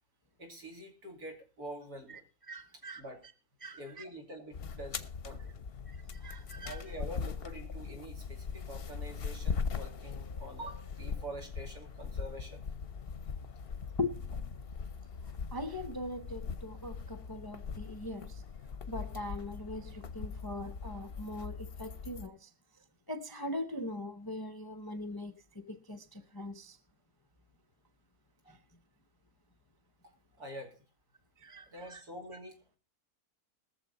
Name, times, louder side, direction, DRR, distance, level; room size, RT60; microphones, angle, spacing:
voice 1, 0.4-2.2 3.0-3.2 3.7-5.6 6.6-12.7 30.4-30.8 31.7-32.8, right 1 dB, 80° right, 3.4 m, -46 dB
voice 2, 2.5-3.0 3.6-4.1 5.9-6.8 14.0-14.5 15.5-18.4 18.9-22.5 23.1-26.8 28.5-28.6 31.4-32.0, left 2 dB, 25° left, 0.5 m, -41 dB
sound 1, 4.5-22.3, left 5 dB, 50° left, 0.8 m, -40 dB
21.0 x 7.2 x 4.1 m
omnidirectional pair, 1.6 m